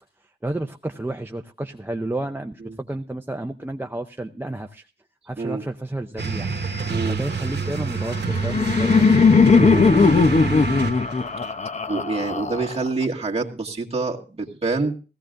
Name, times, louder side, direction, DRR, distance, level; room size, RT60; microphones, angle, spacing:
voice 1, 0.4-4.9 5.3-6.5 7.1-9.5 9.9-10.2, right 1 dB, 10° right, 4 dB, 0.6 m, -31 dB
sound 1, 6.2-11.3, right 4 dB, 60° right, 1.4 m, -27 dB
Laughter, 8.0-13.0, left 4 dB, 40° left, 0.8 m, -18 dB
voice 2, 11.9-15.0, right 3 dB, 30° right, -1 dB, 1.9 m, -26 dB
17.5 x 15.5 x 2.5 m, 0.34 s
wide cardioid pair, 110°, 19 cm